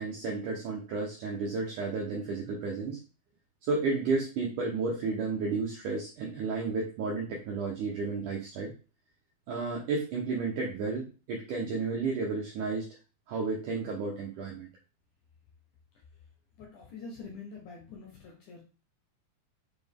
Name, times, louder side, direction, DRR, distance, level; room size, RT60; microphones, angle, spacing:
voice 1, 0.0-3.0 3.6-8.7 9.5-12.9 13.3-14.7, right 4 dB, 65° right, -2 dB, 2.2 m, -32 dB
voice 2, 16.6-18.6, left 4 dB, 70° left, 0 dB, 2.0 m, -45 dB
7.0 x 4.3 x 3.6 m, 0.34 s
omnidirectional pair, 4.6 m